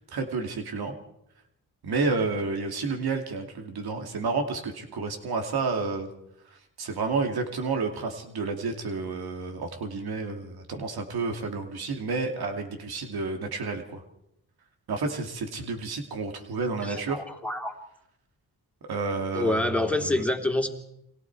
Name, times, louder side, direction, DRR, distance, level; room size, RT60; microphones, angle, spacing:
voice 1, 0.1-0.9 1.8-6.1 6.5-14.0 14.9-17.2 18.9-20.2, right 4 dB, 85° right, 4 dB, 2.6 m, -30 dB
voice 2, 16.8-17.8 19.3-20.7, left 1 dB, 5° left, 3 dB, 3.0 m, -27 dB
30.0 x 23.0 x 4.7 m, 0.84 s
cardioid pair, 75°, 36 cm